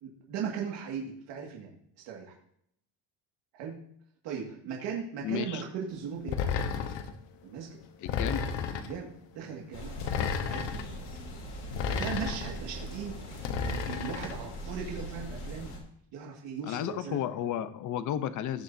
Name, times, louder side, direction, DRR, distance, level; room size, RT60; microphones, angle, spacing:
voice 1, 0.0-2.3 3.5-3.8 4.2-6.4 7.4-7.8 8.8-9.9 10.4-11.0 11.9-15.7 16.1-17.7, right 7 dB, 75° right, -1 dB, 2.2 m, -38 dB
voice 2, 5.2-5.6 8.0-8.5 10.1-10.3 16.6-18.6, left 10 dB, 45° left, 12 dB, 0.8 m, -33 dB
sound 1, 6.3-7.2 8.1-9.0 10.0-10.9 11.7-12.6 13.4-14.4, left 6 dB, 80° left, 1.2 m, -32 dB
sound 2, 9.7-15.8, equal, 60° left, 3.4 m, -41 dB
16.5 x 7.2 x 2.7 m, 0.69 s
cardioid pair, 175°, 43 cm